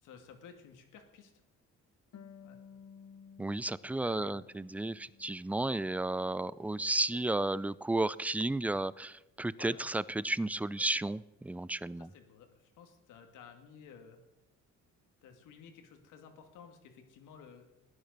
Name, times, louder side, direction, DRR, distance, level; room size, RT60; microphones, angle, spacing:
voice 1, 0.0-1.3 2.4-2.6 3.9-4.5 9.6-9.8 10.8-10.9 12.0-14.2 15.2-17.7, left 6 dB, 90° left, 5 dB, 2.2 m, -54 dB
Harp, 2.1-5.5 5.9-6.9, left 7 dB, 60° left, 1.1 m, -56 dB
voice 2, 3.4-12.1, right 2 dB, 5° right, 19 dB, 0.4 m, -33 dB
15.5 x 10.5 x 6.7 m, 1.0 s
cardioid pair, 90°, 30 cm